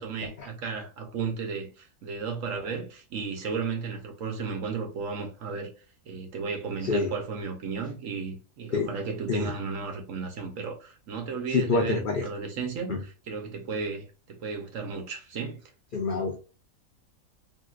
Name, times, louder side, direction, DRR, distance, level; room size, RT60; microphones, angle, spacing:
voice 1, 0.0-5.7 6.0-15.6, right 5 dB, 65° right, 1.2 m, -34 dB
voice 2, 11.5-12.2 15.9-16.4, left 4 dB, 65° left, 0.5 m, -26 dB
3.5 x 2.5 x 2.4 m
omnidirectional pair, 1.5 m